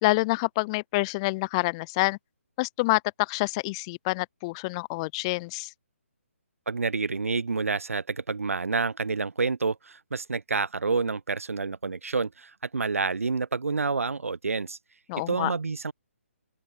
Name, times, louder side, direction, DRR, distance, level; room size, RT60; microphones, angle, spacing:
voice 1, 0.0-2.2 2.6-5.7 15.1-15.5, left 24 dB, 25° left, 0.8 m, -27 dB
voice 2, 6.7-14.8 15.3-15.9, right 4 dB, 80° right, 4.1 m, -28 dB
open air
hypercardioid pair, 150°, 7 cm